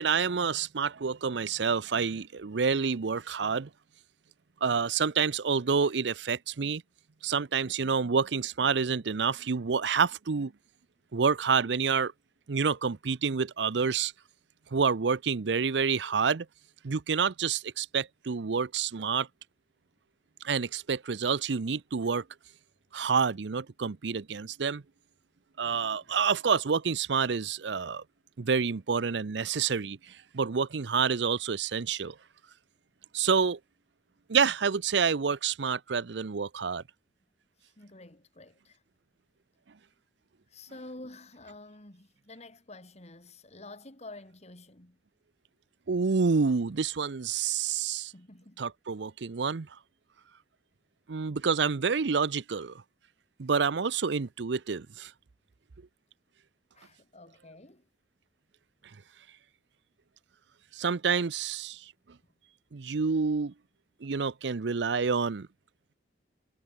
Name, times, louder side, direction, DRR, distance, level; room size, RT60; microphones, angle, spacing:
voice 1, 0.0-3.7 4.6-6.8 7.2-10.5 11.1-12.1 12.5-14.1 14.7-16.5 16.8-19.3 20.4-22.2 22.9-24.8 25.6-28.0 28.4-32.2 33.1-33.6 34.3-36.8 45.9-48.1 48.6-49.7 51.1-52.8 53.4-55.1 60.7-61.9 62.7-63.5 64.0-65.5, right 5 dB, 70° right, 0.6 m, -28 dB
voice 2, 25.6-26.1 37.8-38.8 40.5-45.0 48.1-48.7 51.5-51.9 56.7-57.9, left 2 dB, 35° left, 3.2 m, -49 dB
head